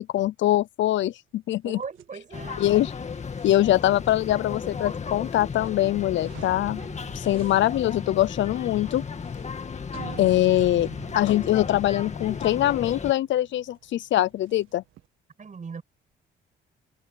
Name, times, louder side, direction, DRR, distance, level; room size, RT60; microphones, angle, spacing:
voice 1, 0.0-1.8 2.6-2.9 3.4-6.8 7.1-9.0 10.2-14.8, left 14 dB, 70° left, 0.6 m, -23 dB
voice 2, 1.6-2.7 15.4-15.8, right 5 dB, 40° right, 7.5 m, -38 dB
sound 1, 1.8-15.1, right 14 dB, 85° right, 1.7 m, -48 dB
sound 2, 2.3-13.1, left 5 dB, 35° left, 2.0 m, -35 dB
cardioid pair, 90°, 20 cm